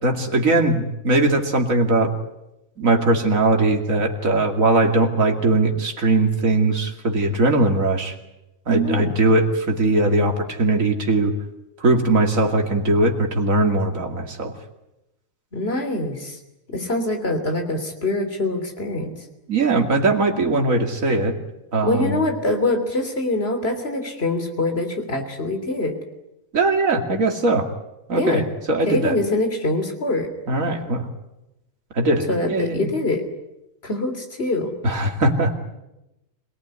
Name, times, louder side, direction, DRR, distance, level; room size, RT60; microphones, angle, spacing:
voice 1, 0.0-2.1 2.8-8.1 8.7-11.3 11.8-14.5 19.5-21.4 21.7-22.2 26.5-27.7 28.1-29.1 30.5-31.1 31.9-32.9 34.8-35.5, right 2 dB, 75° right, 3 dB, 2.9 m, -20 dB
voice 2, 15.5-16.4 16.7-19.1 21.8-25.9 28.1-28.4 28.9-30.3 32.3-33.2 33.8-34.7, left 2 dB, 45° left, 6 dB, 3.5 m, -24 dB
25.5 x 18.5 x 9.7 m, 0.94 s
omnidirectional pair, 1.4 m